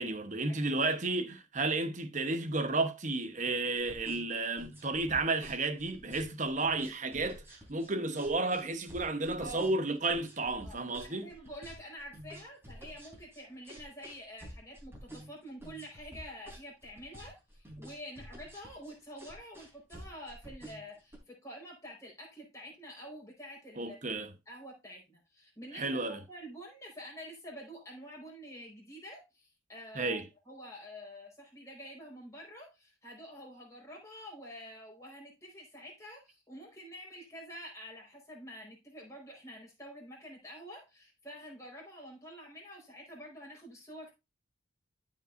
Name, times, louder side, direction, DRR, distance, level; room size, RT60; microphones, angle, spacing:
voice 1, 0.0-11.3 23.8-24.3 25.7-26.2 29.9-30.2, right 3 dB, 40° right, 1.0 m, -32 dB
sound 1, 3.8-21.2, equal, 10° right, 3.3 m, -49 dB
voice 2, 9.4-9.7 10.6-24.0 24.5-30.2 30.4-44.1, equal, 15° left, 4.6 m, -48 dB
14.5 x 5.4 x 2.6 m
head